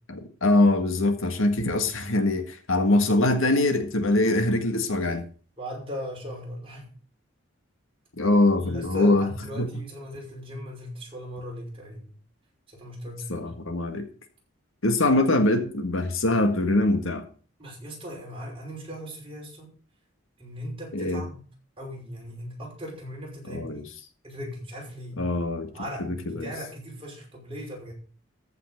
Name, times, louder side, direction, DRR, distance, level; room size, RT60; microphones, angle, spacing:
voice 1, 0.1-5.2 8.2-9.3 9.6-9.7 13.3-14.1 14.8-17.2 20.9-21.2 23.5-23.8 25.2-25.7 26.0-26.5, left 2 dB, 75° left, 7 dB, 1.8 m, -23 dB
voice 2, 5.6-6.9 8.6-12.1 12.7-13.6 15.1-15.2 17.6-19.7 20.4-21.4 21.8-23.8 24.2-25.3 25.7-27.9, equal, 25° right, -2 dB, 5.6 m, -38 dB
14.0 x 5.9 x 6.6 m, 0.40 s
head